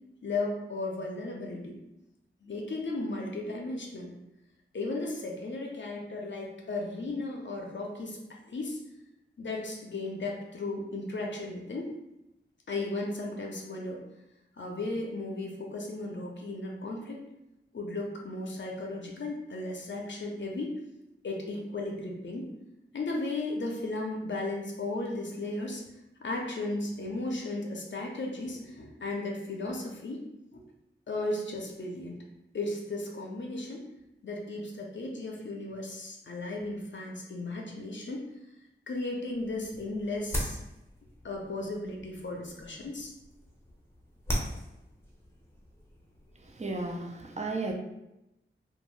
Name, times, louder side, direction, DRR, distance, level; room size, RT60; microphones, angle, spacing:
voice 1, 0.2-1.8 2.4-4.1 4.7-8.8 9.4-11.9 12.7-14.0 14.6-17.2 17.7-20.8 21.2-22.5 22.9-25.8 26.2-30.2 30.5-30.6 31.1-32.2 32.5-33.8 34.2-38.2 38.9-40.6 41.2-43.1, left 2 dB, 65° left, 0 dB, 0.5 m, -35 dB
sound 1, 39.3-47.0, equal, 10° left, 0.7 m, -40 dB
voice 2, 46.6-47.7, right 3 dB, 35° right, 2 dB, 0.5 m, -33 dB
2.6 x 2.2 x 3.1 m, 0.90 s
wide cardioid pair, 60°, 21 cm